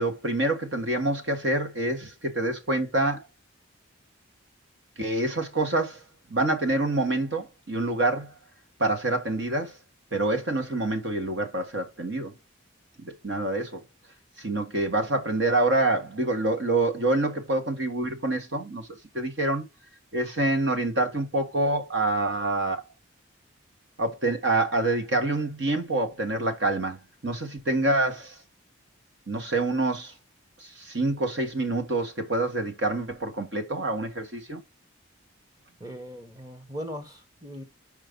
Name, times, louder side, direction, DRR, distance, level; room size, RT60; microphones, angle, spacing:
voice 1, 0.0-3.2 5.0-6.0 6.3-8.3 8.8-9.7 10.1-12.3 13.0-13.8 14.4-18.8 19.1-19.6 20.1-22.8 24.0-28.3 29.3-30.1 30.8-34.6, right 2 dB, 60° right, 1.6 m, -26 dB
voice 2, 35.8-37.6, equal, 20° right, 1.1 m, -39 dB
5.4 x 5.0 x 5.2 m
head